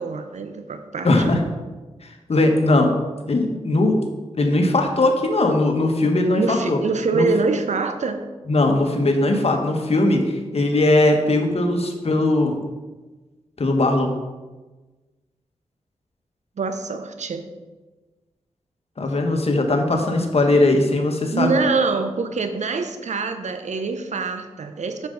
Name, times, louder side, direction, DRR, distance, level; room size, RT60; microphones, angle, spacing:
voice 1, 0.0-1.3 6.3-8.3 16.6-17.5 21.3-25.1, right 4 dB, 70° right, 8 dB, 0.8 m, -25 dB
voice 2, 1.0-1.4 2.0-2.9 3.3-4.0 4.4-6.8 7.1-7.3 8.5-12.6 13.6-14.1 19.0-21.5, left 2 dB, 55° left, 3 dB, 1.4 m, -19 dB
7.1 x 6.8 x 3.9 m, 1.2 s
cardioid pair, 40°, 13 cm